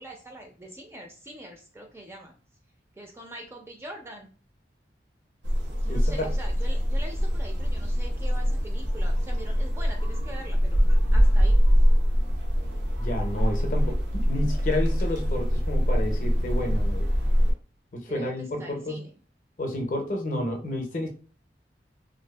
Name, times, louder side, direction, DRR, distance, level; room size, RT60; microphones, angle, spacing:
voice 1, 0.0-2.3 2.9-4.3 5.8-11.6 18.1-19.1, right 1 dB, 15° right, 2 dB, 0.3 m, -43 dB
sound 1, 5.4-17.5, equal, 85° right, 0.6 m, -23 dB
voice 2, 5.9-6.3 13.0-17.1 17.9-19.0 19.6-21.1, left 1 dB, 45° left, 3 dB, 0.5 m, -30 dB
2.5 x 2.3 x 2.2 m, 0.38 s
head